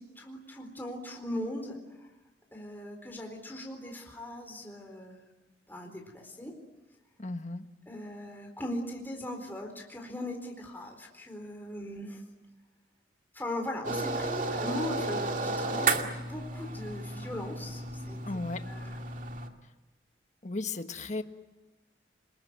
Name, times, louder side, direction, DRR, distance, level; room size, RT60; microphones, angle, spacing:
voice 1, 0.0-2.1 2.5-5.3 5.7-6.5 7.9-12.2 13.3-18.2 18.7-19.0, left 1 dB, 10° left, 1 dB, 4.1 m, -39 dB
voice 2, 7.2-7.7 18.3-18.7 20.4-21.2, left 2 dB, 40° left, 8 dB, 1.5 m, -35 dB
sound 1, 13.8-19.5, right 3 dB, 45° right, 2.3 m, -33 dB
29.5 x 21.0 x 9.5 m, 1.0 s
head